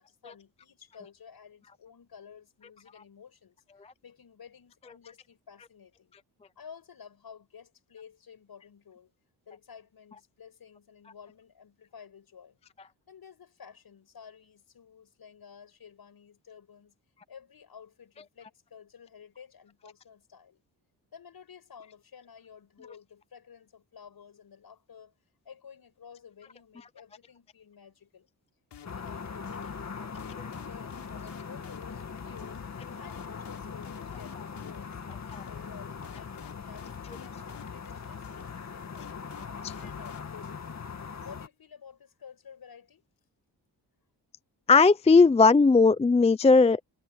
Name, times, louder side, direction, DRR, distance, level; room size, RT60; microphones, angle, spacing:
voice 1, 0.0-6.2 6.6-9.1 9.5-12.6 13.1-17.0 17.3-20.6 21.1-25.1 25.4-28.3 28.8-32.6 33.0-35.0 35.5-39.4 39.8-40.8 41.2-43.1, left 7 dB, 60° left, 7.1 m, -52 dB
sound 1, 28.7-40.8, left 8 dB, 80° left, 5.9 m, -50 dB
sound 2, 28.8-41.5, left 5 dB, 40° left, 2.2 m, -41 dB
voice 2, 44.7-46.8, left 4 dB, 15° left, 0.4 m, -18 dB
wide cardioid pair, 115°, 41 cm